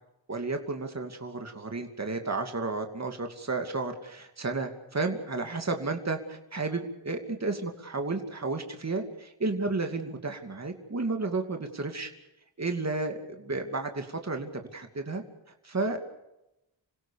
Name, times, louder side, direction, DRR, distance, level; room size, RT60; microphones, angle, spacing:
voice 1, 0.3-12.1 12.6-15.2 15.6-16.0, right 3 dB, 35° right, 4 dB, 2.6 m, -32 dB
27.5 x 17.0 x 7.1 m, 0.92 s
cardioid pair, 60°, 47 cm